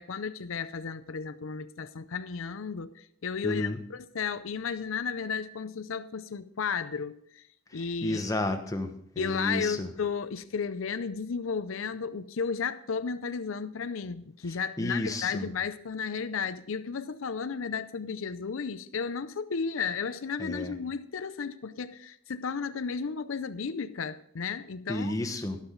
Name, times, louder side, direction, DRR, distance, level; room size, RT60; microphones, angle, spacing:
voice 1, 0.0-7.4 7.7-8.2 9.2-25.2, left 6 dB, 80° left, 12 dB, 0.6 m, -33 dB
voice 2, 3.4-3.8 7.7-9.9 14.8-15.5 20.4-20.7 24.9-25.6, left 1 dB, 15° left, 6 dB, 1.1 m, -32 dB
12.5 x 12.0 x 3.9 m, 0.70 s
head